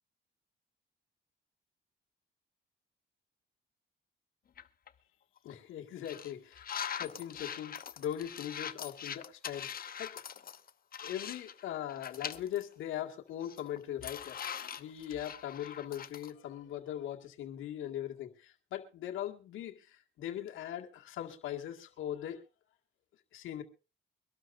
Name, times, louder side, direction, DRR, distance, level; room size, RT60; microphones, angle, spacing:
sound 1, 4.6-4.9 5.4-5.5 6.0-11.6 11.9-12.6 13.0-13.1 13.4-16.3, left 8 dB, 50° left, 1.0 m, -42 dB
voice 1, 5.4-9.7 10.0-10.1 11.0-14.5 14.8-22.4 23.3-23.6, left 11 dB, 85° left, 4 dB, 2.0 m, -40 dB
24.0 x 12.5 x 2.6 m, 0.31 s
cardioid pair, 90°, 20 cm